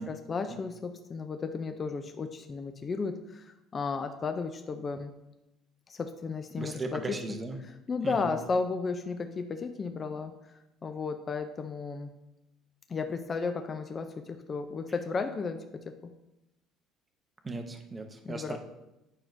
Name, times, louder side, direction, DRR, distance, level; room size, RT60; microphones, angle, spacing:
voice 1, 0.0-5.1 5.9-7.2 7.9-10.5 10.8-12.1 12.9-16.1 18.3-18.6, left 4 dB, 25° left, 7 dB, 0.4 m, -34 dB
voice 2, 6.6-7.6 8.0-8.3 17.4-18.6, right 3 dB, 15° right, 5 dB, 0.6 m, -37 dB
9.1 x 5.9 x 2.6 m, 0.93 s
cardioid pair, 160°, 0 cm